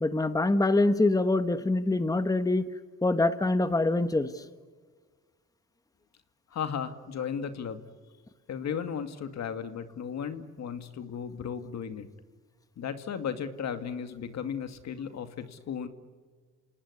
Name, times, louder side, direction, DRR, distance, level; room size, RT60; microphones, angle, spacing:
voice 1, 0.0-2.7 3.0-4.3, left 2 dB, 10° left, 11 dB, 1.3 m, -24 dB
voice 2, 6.5-7.8 8.5-12.1 12.8-15.9, left 7 dB, 65° left, 9 dB, 2.3 m, -35 dB
28.5 x 19.0 x 9.8 m, 1.5 s
cardioid pair, 90°, 30 cm